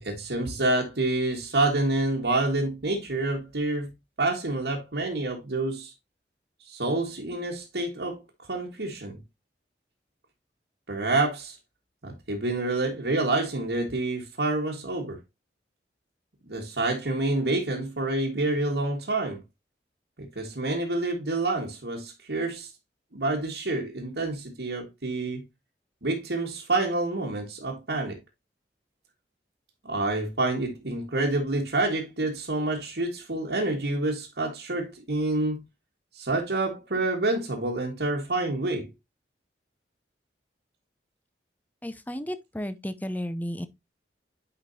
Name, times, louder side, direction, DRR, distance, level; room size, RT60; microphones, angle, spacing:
voice 1, 0.0-3.9 4.2-5.9 6.7-8.2 8.5-9.2 10.9-11.6 12.0-15.2 16.5-19.4 20.2-22.7 23.1-25.4 26.0-28.2 29.8-35.6 36.1-38.9, right 2 dB, 70° right, 1.6 m, -28 dB
voice 2, 41.8-43.7, equal, 10° left, 0.6 m, -33 dB
9.6 x 5.1 x 2.7 m
head